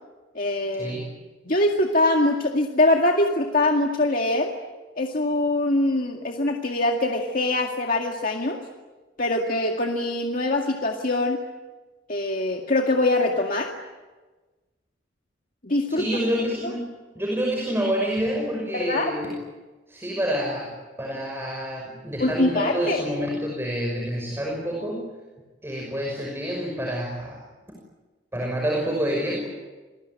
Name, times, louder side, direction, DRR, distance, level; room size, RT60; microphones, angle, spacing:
voice 1, 0.3-1.0 1.4-4.5 5.0-8.6 9.2-11.4 12.1-13.7 15.6-16.1 18.7-19.1 22.2-23.0, left 2 dB, 50° left, 1 dB, 2.2 m, -23 dB
voice 2, 15.9-16.9 17.2-19.4 19.9-25.1 25.6-27.4 28.3-29.5, equal, 15° right, 0 dB, 5.9 m, -28 dB
28.5 x 21.5 x 9.1 m, 1.2 s
head